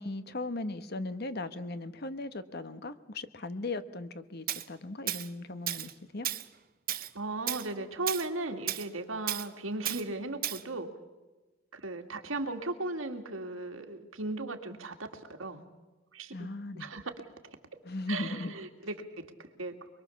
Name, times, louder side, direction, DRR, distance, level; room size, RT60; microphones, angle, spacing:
voice 1, 0.0-6.3 16.3-16.9 17.8-18.5, left 2 dB, 50° left, 12 dB, 1.1 m, -38 dB
Tools, 4.5-4.6 5.1-5.3 5.7-5.9 6.2-6.5 6.9-7.1 7.5-7.7 8.1-8.3 8.7-8.9 9.3-9.5 9.9-10.0 10.4-10.6, right 13 dB, 45° right, 0.8 m, -33 dB
voice 2, 7.1-10.9 11.7-15.6 16.1-16.5 16.8-17.1 17.4-17.6 18.1-19.3 19.6-19.9, right 2 dB, 80° right, 5 dB, 2.3 m, -37 dB
24.0 x 22.5 x 7.1 m, 1.2 s
head